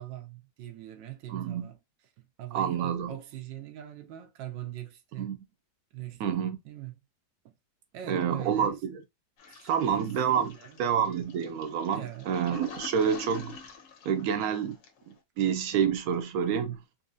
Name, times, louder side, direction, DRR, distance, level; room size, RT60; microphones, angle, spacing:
voice 1, 0.0-1.8 2.2-5.3 5.9-6.9 7.4-7.5 7.9-8.8 9.5-10.1 10.4-10.8 11.9-12.3, right 12 dB, 85° right, 1.3 m, -42 dB
voice 2, 1.3-1.7 2.5-3.1 5.2-5.4 6.2-6.6 8.1-9.0 9.7-10.5 10.8-13.6 14.0-14.8 15.4-16.8, right 8 dB, 70° right, 0.9 m, -28 dB
Toilet flush, 9.4-15.1, left 5 dB, 80° left, 1.5 m, -46 dB
4.0 x 2.7 x 2.5 m
omnidirectional pair, 1.9 m